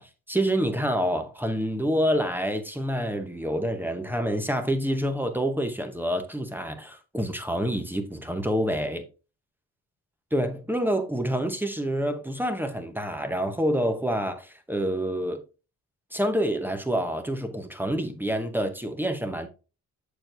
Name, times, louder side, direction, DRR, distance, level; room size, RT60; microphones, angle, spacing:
voice 1, 0.0-9.1 10.3-15.4 16.1-19.5, equal, 5° right, 0.8 m, -27 dB
6.9 x 6.1 x 2.5 m
cardioid pair, 90°, 30 cm